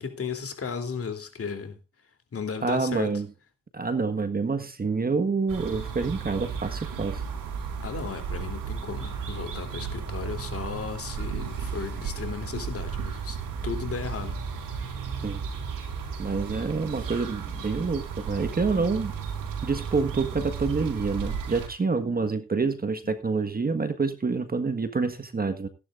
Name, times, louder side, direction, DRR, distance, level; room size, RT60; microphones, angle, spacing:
voice 1, 0.0-1.8 2.3-3.2 7.8-14.4 23.0-23.2, left 5 dB, 40° left, 3.2 m, -35 dB
voice 2, 2.6-3.3 3.7-7.2 15.2-15.4 16.2-19.1 19.6-25.7, right 4 dB, 25° right, 1.5 m, -27 dB
sound 1, 5.5-21.7, right 6 dB, 65° right, 4.7 m, -34 dB
16.5 x 11.0 x 2.5 m
cardioid pair, 80°, 35 cm